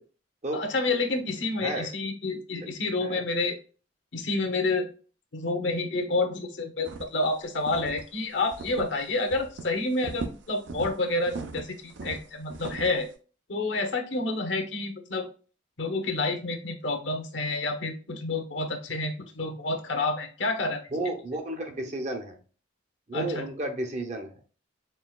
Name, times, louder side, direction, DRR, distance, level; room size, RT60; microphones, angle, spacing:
voice 1, 0.5-3.6 4.1-4.9 5.3-13.1 13.5-15.3 15.8-20.8 23.1-23.4, left 2 dB, 65° left, 5 dB, 0.9 m, -29 dB
voice 2, 1.6-1.9 2.6-2.7 3.0-3.2 20.9-22.4 23.1-24.3, right 1 dB, 35° right, 4 dB, 0.7 m, -32 dB
sound 1, 6.8-7.2 7.6-8.0 8.5-9.0 9.3-9.6 10.0-10.9 11.3-13.0, right 3 dB, 70° right, 0.6 m, -38 dB
4.5 x 3.9 x 2.3 m, 0.38 s
head